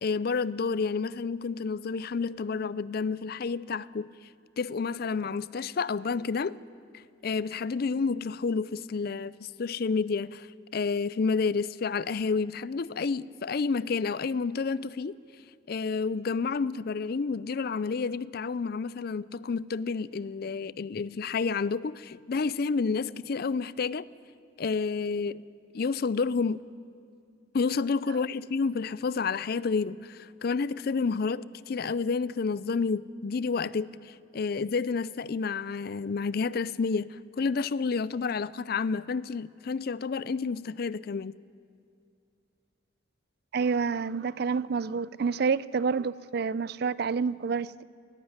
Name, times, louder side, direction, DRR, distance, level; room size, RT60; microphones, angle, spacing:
voice 1, 0.0-4.1 4.6-6.6 6.9-10.5 10.7-15.2 15.7-24.1 24.6-25.4 25.7-26.6 27.5-41.3, left 4 dB, 50° left, 0.4 m, -30 dB
voice 2, 43.5-47.8, right 5 dB, 55° right, 0.4 m, -28 dB
18.5 x 15.5 x 9.5 m
head